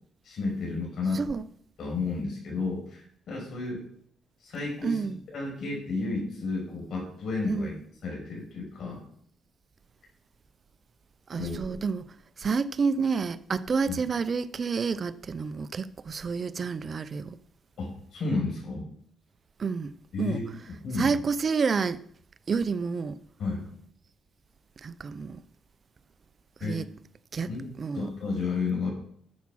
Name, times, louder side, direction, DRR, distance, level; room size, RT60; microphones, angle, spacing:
voice 1, 0.2-1.2 1.8-3.8 4.4-5.0 5.3-7.7 8.0-9.0 11.4-11.8 13.9-14.0 17.8-18.8 20.1-20.4 20.7-21.2 23.4-23.7 26.6-26.8 27.5-27.6 27.9-28.9, left 3 dB, 60° left, 6.2 m, -32 dB
voice 2, 1.1-1.5 4.8-5.2 7.5-7.7 11.3-12.1 12.4-17.4 19.6-19.9 20.2-20.4 21.0-22.0 22.5-23.2 24.8-25.4 26.6-26.9 27.3-27.5 27.8-28.1, right 5 dB, 40° right, 0.6 m, -29 dB
11.5 x 7.3 x 6.1 m
cardioid pair, 90°, 0 cm